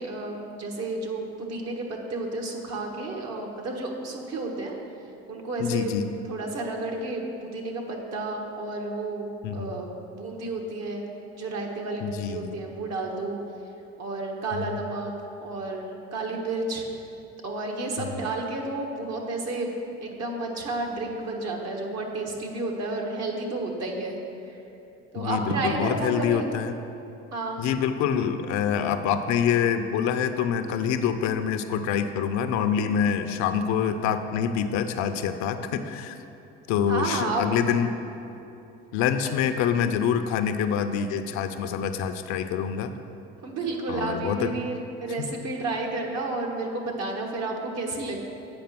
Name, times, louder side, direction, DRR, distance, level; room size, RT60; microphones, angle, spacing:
voice 1, 0.0-4.8 5.3-5.9 6.3-11.0 11.4-13.4 14.0-15.1 15.4-16.9 17.4-19.7 20.0-24.2 24.5-24.6 25.1-26.5 27.3-27.6 36.9-37.4 43.4-48.2, right 2 dB, 55° right, 1 dB, 1.5 m, -31 dB
voice 2, 5.6-6.1 9.4-9.7 12.0-12.6 14.5-14.8 18.0-18.1 25.2-26.8 27.6-36.2 36.7-37.9 38.9-42.9 43.9-44.5, left 8 dB, 65° left, 9 dB, 0.6 m, -26 dB
8.6 x 5.1 x 6.0 m, 2.8 s
hypercardioid pair, 70°, 31 cm